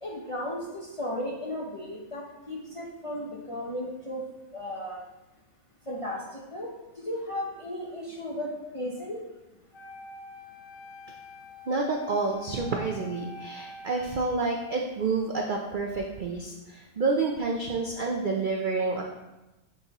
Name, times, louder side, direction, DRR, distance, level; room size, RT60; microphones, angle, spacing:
voice 1, 0.0-4.2 4.5-5.0 5.9-6.7 7.0-9.2, left 1 dB, 35° left, -3 dB, 0.5 m, -35 dB
Wind instrument woodwind instrument, 9.7-14.8, left 2 dB, 60° left, 1.2 m, -46 dB
voice 2, 11.7-19.0, right 3 dB, 80° right, 1 dB, 0.4 m, -29 dB
9.6 x 4.1 x 2.9 m, 1.0 s
omnidirectional pair, 1.6 m